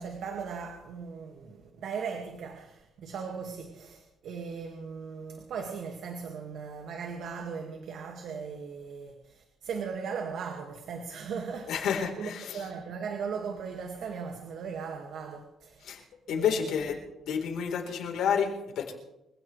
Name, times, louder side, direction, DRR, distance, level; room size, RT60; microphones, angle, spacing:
voice 1, 0.0-16.0 16.3-16.8, right 6 dB, 75° right, 3 dB, 2.2 m, -38 dB
voice 2, 11.7-12.6 15.8-17.0 17.3-18.9, left 7 dB, 80° left, 2 dB, 4.2 m, -30 dB
25.5 x 16.5 x 3.4 m, 0.90 s
cardioid pair, 90°, 0 cm